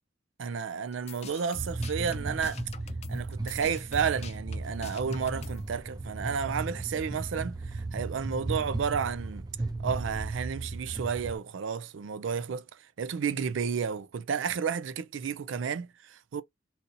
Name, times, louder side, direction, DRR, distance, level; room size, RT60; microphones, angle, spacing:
voice 1, 0.4-2.6 3.1-9.4 9.8-16.4, right 6 dB, 85° right, 0.4 m, -32 dB
sound 1, 0.9-5.7, left 4 dB, 35° left, 0.4 m, -44 dB
sound 2, 1.6-11.4, right 2 dB, 20° right, 0.5 m, -36 dB
4.0 x 2.8 x 2.5 m
head